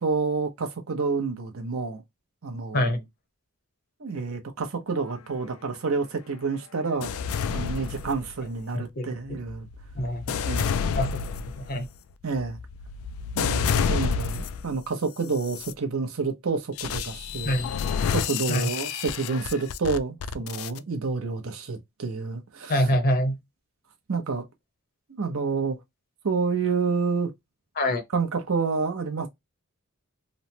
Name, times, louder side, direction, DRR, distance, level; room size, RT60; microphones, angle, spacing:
voice 1, 0.0-2.0 2.4-3.0 4.0-7.1 7.5-9.7 10.4-10.8 12.2-12.6 13.3-17.5 18.1-22.8 24.1-24.5 25.1-25.8 26.2-27.3 28.1-29.3, right 4 dB, 65° right, 0.7 m, -29 dB
sound 1, 7.0-8.6 9.3-14.8 15.3-15.7 16.8-20.8, left 6 dB, 65° left, 0.3 m, -29 dB
voice 2, 8.7-9.4 10.0-10.4 10.9-11.2 11.6-11.9 17.4-17.7 18.5-18.7 22.7-23.4 27.8-28.0, equal, 40° left, 0.8 m, -25 dB
3.1 x 2.0 x 2.7 m
head